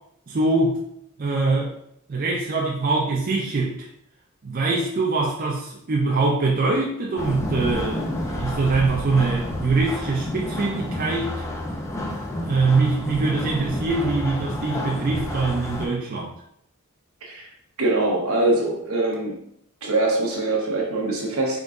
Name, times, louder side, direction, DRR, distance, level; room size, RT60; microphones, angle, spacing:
voice 1, 0.3-0.8 1.2-1.7 2.1-3.9 4.4-11.5 12.4-16.3, right 3 dB, 40° right, -2 dB, 0.5 m, -23 dB
sound 1, 7.2-15.9, left 1 dB, 15° left, 0.5 m, -30 dB
voice 2, 17.8-19.4 19.8-21.6, right 2 dB, 75° right, -1 dB, 0.9 m, -23 dB
4.0 x 3.7 x 2.4 m, 0.73 s
head